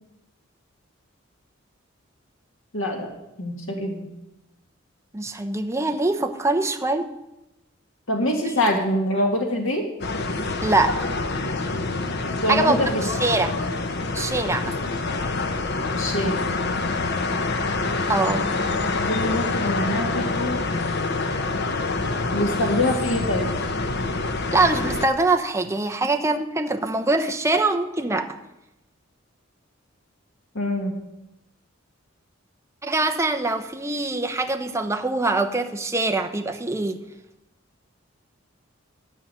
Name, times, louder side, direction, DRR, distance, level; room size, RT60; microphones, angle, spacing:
voice 1, 2.7-3.1 3.4-4.1 8.1-9.9 12.3-13.0 15.9-16.5 19.1-20.6 22.3-23.5 30.5-31.0, left 1 dB, 80° left, 2 dB, 1.8 m, -25 dB
voice 2, 5.1-7.1 8.4-8.5 10.6-11.1 12.5-13.5 14.1-14.7 18.1-18.5 24.5-28.4 32.8-37.0, right 2 dB, 15° right, 6 dB, 0.8 m, -23 dB
sound 1, 10.0-25.1, left 3 dB, 55° left, 0.9 m, -26 dB
12.5 x 5.9 x 9.0 m, 0.92 s
head